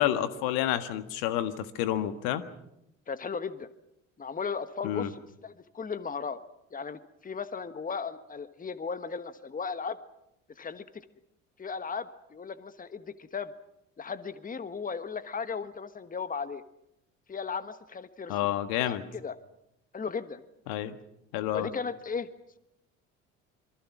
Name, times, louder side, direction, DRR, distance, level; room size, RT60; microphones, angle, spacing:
voice 1, 0.0-2.4 4.8-5.1 18.3-19.0 20.7-20.9 21.3-21.7, left 12 dB, 65° left, 11 dB, 1.7 m, -29 dB
voice 2, 3.1-3.7 4.2-6.4 6.7-10.0 10.6-11.0 11.6-13.5 14.0-16.6 17.3-18.4 18.8-19.3 19.9-20.4 21.5-22.3, left 5 dB, 20° left, 12 dB, 1.4 m, -36 dB
27.5 x 23.0 x 6.1 m, 0.84 s
hypercardioid pair, 60°, 38 cm